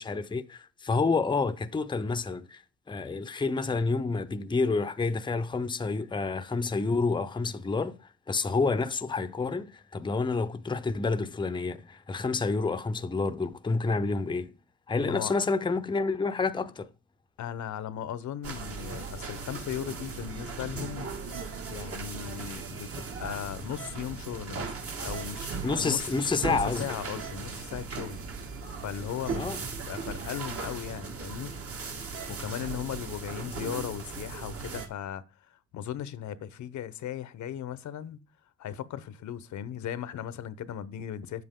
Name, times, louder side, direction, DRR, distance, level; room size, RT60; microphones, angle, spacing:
voice 1, 0.0-2.6 2.9-8.0 8.3-14.5 14.9-16.9 25.6-27.0 29.3-29.6, left 4 dB, 15° left, 0.7 m, -29 dB
voice 2, 15.0-15.3 17.4-21.1 21.7-26.1 26.4-28.2 28.8-29.6 29.9-31.5 32.3-38.2 38.6-41.4, left 10 dB, 70° left, 0.9 m, -37 dB
sound 1, 18.4-34.9, right 4 dB, 50° right, 1.9 m, -37 dB
9.4 x 7.8 x 3.7 m
cardioid pair, 90°, 30 cm